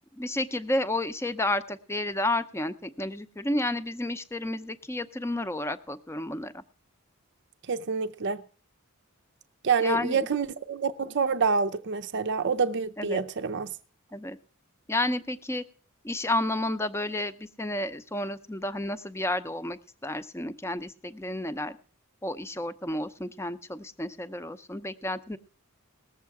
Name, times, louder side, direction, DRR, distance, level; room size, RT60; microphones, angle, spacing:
voice 1, 0.2-6.6 9.8-10.2 13.0-13.2 14.1-14.4 14.9-15.6 16.0-21.8 22.2-25.4, left 1 dB, 10° left, 0.6 m, -31 dB
voice 2, 7.7-8.4 9.6-13.7, right 5 dB, 55° right, 0.6 m, -27 dB
19.5 x 7.4 x 4.7 m
head